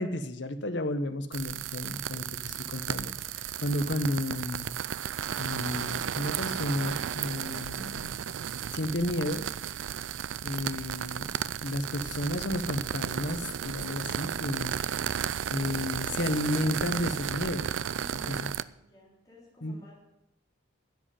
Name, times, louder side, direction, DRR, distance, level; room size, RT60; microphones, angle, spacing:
voice 1, 0.0-4.7 5.4-8.2 8.7-9.5 10.4-11.3 11.6-15.0 15.5-17.7 18.3-18.5 19.6-19.8, left 1 dB, 65° left, 9 dB, 1.1 m, -32 dB
sound 1, 1.3-18.6, right 8 dB, 80° right, 0.4 m, -34 dB
voice 2, 18.0-19.9, left 1 dB, 20° left, -6 dB, 3.5 m, -54 dB
10.5 x 7.8 x 9.2 m, 0.82 s
head